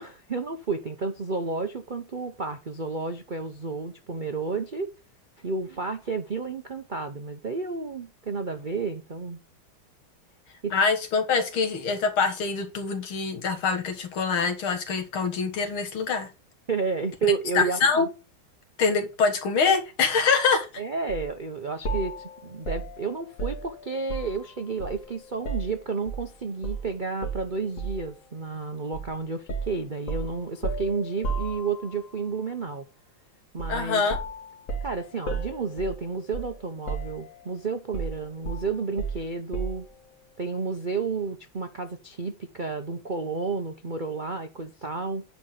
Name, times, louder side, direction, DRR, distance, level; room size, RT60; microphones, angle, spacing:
voice 1, 0.0-4.9 5.4-9.4 10.6-10.7 16.7-18.1 20.8-32.9 33.5-34.0 34.8-39.9 40.4-45.2, right 4 dB, 60° right, 0.5 m, -31 dB
voice 2, 10.7-16.3 17.2-18.1 18.8-20.7 33.7-34.2, left 5 dB, 90° left, 2.5 m, -24 dB
sound 1, 21.1-21.3 21.8-24.4 24.8-26.3 26.6-26.9 27.2-28.1 28.9-29.1 29.5-32.0 33.6-33.8 34.1-36.6 36.9-37.5 37.9-39.9, right 3 dB, 40° left, 1.9 m, -34 dB
9.8 x 4.0 x 7.5 m
omnidirectional pair, 2.2 m